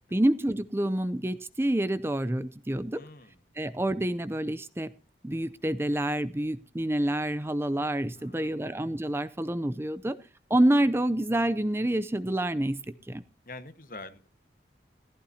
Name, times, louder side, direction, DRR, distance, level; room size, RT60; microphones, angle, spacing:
voice 1, 0.1-3.0 3.6-4.9 5.2-10.2 10.5-13.2, right 1 dB, 15° right, 12 dB, 0.5 m, -27 dB
voice 2, 2.9-3.4 8.2-8.6 13.4-14.3, left 2 dB, 50° left, 10 dB, 1.5 m, -45 dB
17.0 x 15.5 x 2.8 m, 0.34 s
head